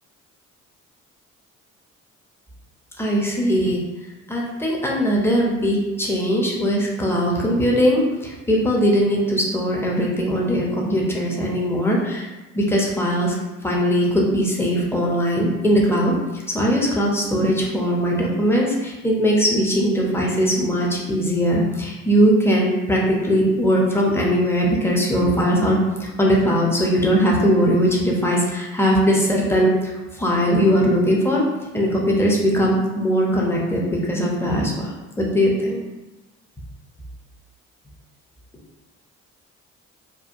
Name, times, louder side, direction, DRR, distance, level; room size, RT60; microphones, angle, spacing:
voice 1, 3.0-3.8 4.3-12.3 12.5-13.4 13.6-16.1 16.5-29.9 30.2-31.4 31.7-35.8, equal, 5° left, -3 dB, 0.7 m, -20 dB
2.7 x 2.2 x 2.6 m, 1.1 s
hypercardioid pair, 45°, 39 cm